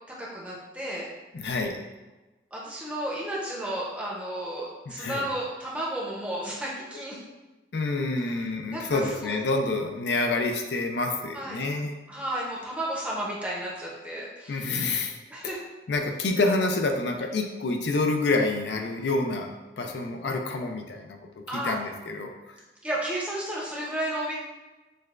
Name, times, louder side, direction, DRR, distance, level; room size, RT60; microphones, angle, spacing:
voice 1, 0.1-1.1 2.5-7.2 8.7-9.4 11.3-11.6 12.1-14.7 15.3-15.6 21.5-21.7 22.8-24.4, right 1 dB, 5° right, -5 dB, 0.6 m, -33 dB
voice 2, 1.3-1.8 5.0-5.3 7.7-11.9 14.5-15.2 15.4-15.6 15.9-22.3, left 3 dB, 75° left, 3 dB, 0.4 m, -28 dB
6.4 x 2.2 x 2.4 m, 1.2 s
head